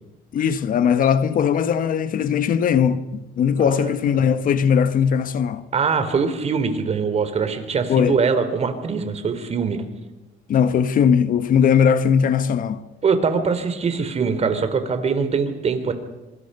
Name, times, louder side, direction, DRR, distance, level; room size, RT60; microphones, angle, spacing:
voice 1, 0.3-5.6 7.9-8.2 10.5-12.8, left 7 dB, 55° left, 1.3 m, -19 dB
voice 2, 3.6-4.2 5.7-9.8 13.0-15.9, right 5 dB, 40° right, 3.4 m, -23 dB
26.0 x 24.5 x 5.6 m
cardioid pair, 110°, 17 cm